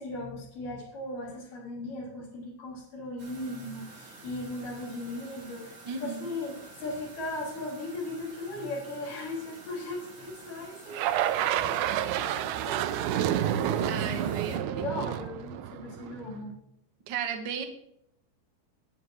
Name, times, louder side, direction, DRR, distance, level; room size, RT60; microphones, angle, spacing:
voice 1, 0.0-16.6, left 2 dB, 65° left, -5 dB, 5.0 m, -38 dB
sound 1, 3.2-14.6, right 3 dB, 40° right, 2.3 m, -49 dB
voice 2, 5.9-6.3 13.9-14.9 17.1-17.6, right 7 dB, 60° right, 4 dB, 1.1 m, -34 dB
sound 2, 10.9-16.3, right 11 dB, 85° right, 1.7 m, -29 dB
20.5 x 6.9 x 3.1 m, 0.74 s
omnidirectional pair, 4.1 m